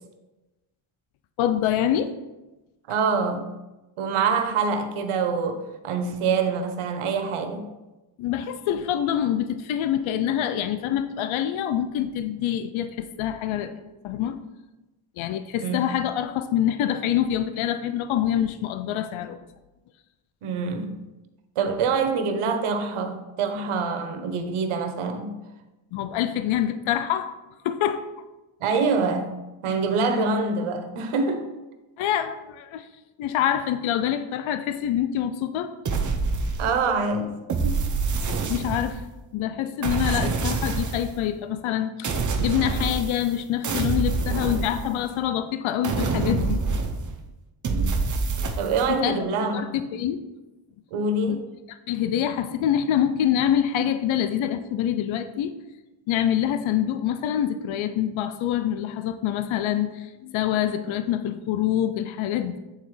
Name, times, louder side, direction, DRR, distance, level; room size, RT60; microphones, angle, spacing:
voice 1, 1.4-2.1 8.2-13.7 14.0-14.4 15.2-19.4 25.9-27.3 27.6-28.0 32.0-32.9 33.2-35.7 38.5-39.0 39.3-46.6 48.9-49.2 49.5-50.2 51.3-51.4 51.7-55.5 56.1-62.6, left 10 dB, 75° left, 10 dB, 0.5 m, -25 dB
voice 2, 2.9-3.5 4.0-7.7 15.6-15.8 20.4-21.0 21.6-25.4 28.6-29.3 29.6-31.5 36.6-37.3 37.6-37.7 47.6-48.0 48.6-49.8 50.9-51.4, right 4 dB, 90° right, 7 dB, 0.8 m, -25 dB
sound 1, 35.8-37.0 37.5-39.1 39.8-41.1 42.0-43.3 43.6-45.2 45.8-47.2 47.6-48.9, right 4 dB, 40° right, 0.7 m, -26 dB
8.2 x 3.9 x 3.1 m, 1.1 s
cardioid pair, 80°, 48 cm